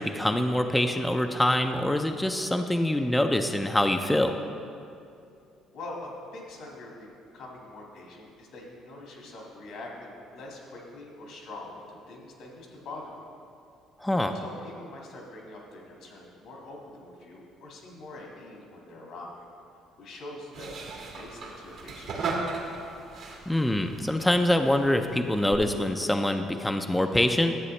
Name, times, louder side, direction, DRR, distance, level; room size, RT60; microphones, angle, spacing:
voice 1, 0.0-4.4 14.0-14.4 23.5-27.6, left 1 dB, 10° left, 6 dB, 0.4 m, -25 dB
voice 2, 5.7-7.1 7.3-13.2 14.3-19.3 20.0-20.7 21.1-22.3, left 2 dB, 75° left, -1 dB, 1.9 m, -44 dB
sound 1, 20.5-25.6, right 3 dB, 70° right, 1.5 m, -37 dB
11.0 x 7.6 x 3.2 m, 2.5 s
supercardioid pair, 80°, 0 cm